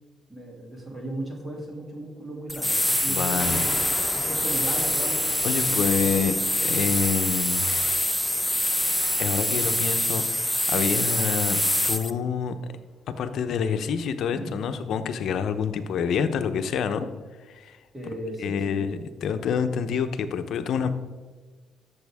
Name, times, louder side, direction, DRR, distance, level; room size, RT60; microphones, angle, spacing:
voice 1, 0.3-3.7 4.1-6.2 14.3-14.6 17.9-18.9, right 1 dB, 20° right, -2 dB, 2.8 m, -36 dB
sound 1, 2.5-12.1, left 1 dB, 5° left, 0.6 m, -25 dB
voice 2, 3.1-3.6 5.4-6.3 6.6-8.0 9.2-12.6 13.2-17.1 17.5-17.8 18.4-20.9, left 6 dB, 70° left, 9 dB, 0.8 m, -27 dB
sound 2, 3.4-12.6, left 3 dB, 35° left, 1.1 m, -42 dB
12.5 x 7.0 x 3.6 m, 1.4 s
cardioid pair, 90°, 0 cm